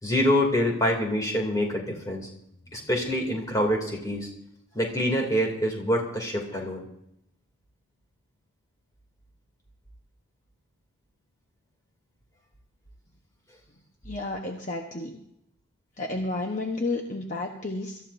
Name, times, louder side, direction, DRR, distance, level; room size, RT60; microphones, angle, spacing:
voice 1, 0.0-2.3 2.7-4.3 4.7-6.8, equal, 15° left, 0 dB, 2.7 m, -26 dB
voice 2, 14.0-15.2 16.0-18.0, left 2 dB, 40° left, 2 dB, 1.1 m, -31 dB
25.5 x 13.5 x 2.7 m, 0.77 s
head